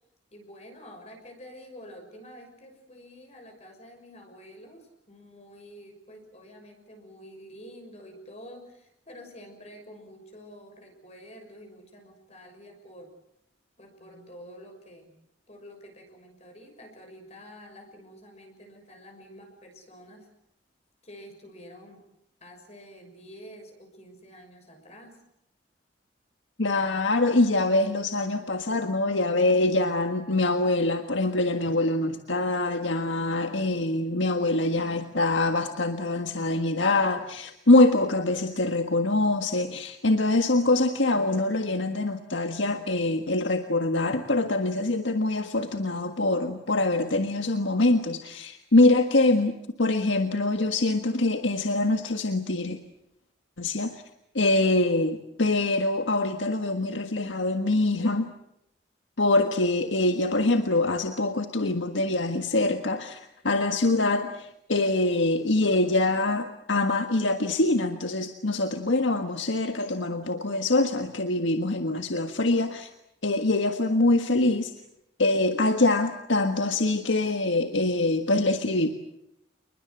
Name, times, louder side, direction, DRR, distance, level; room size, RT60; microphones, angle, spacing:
voice 1, 0.3-13.1 13.8-15.1 15.5-20.3 21.0-22.0 22.4-25.2 31.6-31.7 77.6-77.7, equal, 35° left, 4 dB, 6.5 m, -48 dB
voice 2, 26.6-52.8 53.6-54.0 54.3-58.3 59.2-72.9 73.2-74.7 75.2-78.9, left 2 dB, 90° left, 6 dB, 1.6 m, -24 dB
29.0 x 21.5 x 7.9 m, 0.79 s
head